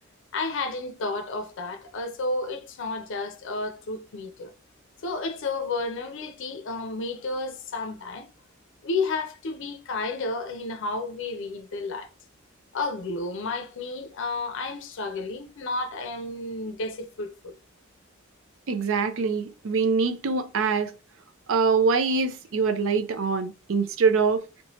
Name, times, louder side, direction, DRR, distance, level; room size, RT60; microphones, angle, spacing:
voice 1, 0.3-4.5 5.0-8.3 8.8-12.1 12.7-17.5, left 3 dB, 65° left, 0.5 m, -31 dB
voice 2, 18.7-20.9 21.5-24.4, right 5 dB, 70° right, 0.5 m, -24 dB
3.0 x 2.2 x 2.7 m
head